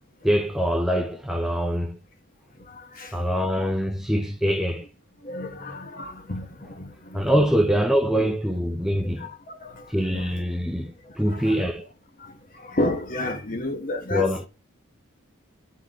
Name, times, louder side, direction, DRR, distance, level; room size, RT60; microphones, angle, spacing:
voice 1, 0.2-2.0 3.1-4.9 7.1-9.3 9.9-11.9 14.1-14.5, equal, ahead, 0.5 m, -24 dB
voice 2, 2.7-3.2 5.2-7.2 8.2-8.4 9.2-9.8 10.1-10.4 11.3-11.7 12.2-12.3 12.6-14.5, left 1 dB, 40° left, 1.1 m, -32 dB
9.3 x 3.7 x 3.5 m
head